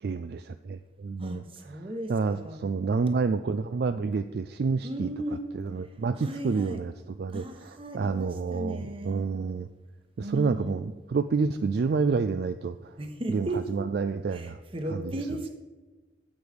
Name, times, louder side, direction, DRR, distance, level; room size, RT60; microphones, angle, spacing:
voice 1, 0.0-5.1 5.5-9.7 10.2-13.0 13.3-14.6 14.9-15.3, right 4 dB, 55° right, 11 dB, 0.3 m, -29 dB
voice 2, 1.2-2.6 4.8-5.4 6.2-6.8 7.3-9.2 10.2-10.8 13.0-13.6 14.3-15.5, right 1 dB, 30° right, 5 dB, 1.2 m, -36 dB
11.5 x 8.1 x 5.2 m, 1.2 s
head